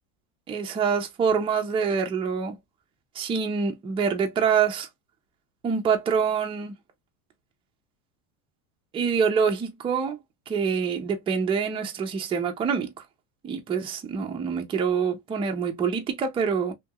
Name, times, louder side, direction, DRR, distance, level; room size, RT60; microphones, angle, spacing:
voice 1, 0.5-2.6 3.2-4.9 5.6-6.7 8.9-10.2 10.5-12.9 13.4-16.7, right 6 dB, 15° right, 0.4 m, -25 dB
2.8 x 2.8 x 2.3 m
supercardioid pair, 135°, 43 cm